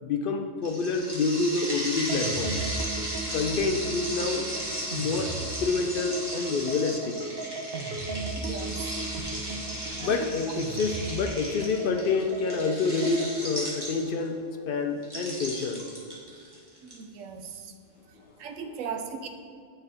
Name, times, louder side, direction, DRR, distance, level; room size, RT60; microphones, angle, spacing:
voice 1, 0.0-2.7 3.3-4.5 4.9-7.2 10.0-15.9 18.6-18.9, left 4 dB, 65° left, 5 dB, 0.5 m, -28 dB
sound 1, 0.6-14.3 15.0-16.9, right 1 dB, 20° right, 1.6 m, -36 dB
sound 2, 2.1-13.4, right 3 dB, 50° right, 0.9 m, -36 dB
voice 2, 8.3-9.0 10.0-10.3 16.8-17.7 18.4-19.3, right 6 dB, 75° right, 6 dB, 1.0 m, -38 dB
8.7 x 4.4 x 4.2 m, 2.3 s
omnidirectional pair, 1.4 m